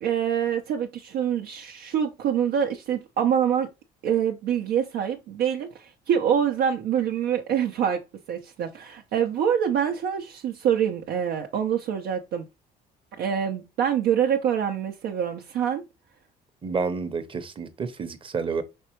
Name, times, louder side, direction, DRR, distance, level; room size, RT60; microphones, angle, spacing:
voice 1, 0.0-3.7 4.0-8.0 8.3-12.4 13.2-15.8, right 8 dB, 75° right, 0.7 m, -25 dB
voice 2, 16.6-18.6, right 5 dB, 30° right, 0.8 m, -29 dB
5.3 x 3.3 x 3.0 m
cardioid pair, 110°, 17 cm